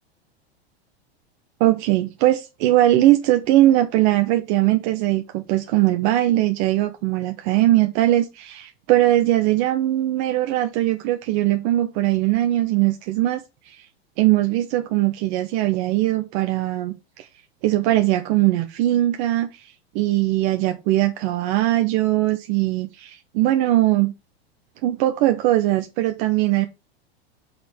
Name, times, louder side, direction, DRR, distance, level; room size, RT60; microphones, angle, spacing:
voice 1, 1.6-13.8 14.2-17.3 17.6-24.1 24.8-26.7, right 15 dB, 45° right, 0.9 m, -20 dB
6.1 x 4.7 x 5.0 m
hypercardioid pair, 95°, 32 cm